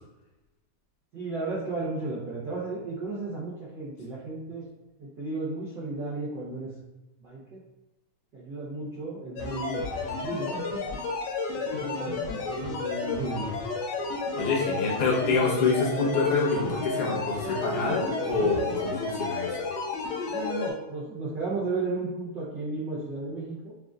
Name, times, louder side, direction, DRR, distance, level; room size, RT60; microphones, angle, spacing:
voice 1, 1.1-4.6 5.0-6.7 7.2-7.6 8.3-10.6 11.5-13.5 20.3-23.7, right 3 dB, 85° right, -7 dB, 0.9 m, -34 dB
sound 1, 9.4-20.7, left 3 dB, 85° left, 2.3 m, -32 dB
voice 2, 14.4-19.6, left 3 dB, 60° left, -3 dB, 1.6 m, -26 dB
6.3 x 2.5 x 2.4 m, 1.0 s
omnidirectional pair, 3.3 m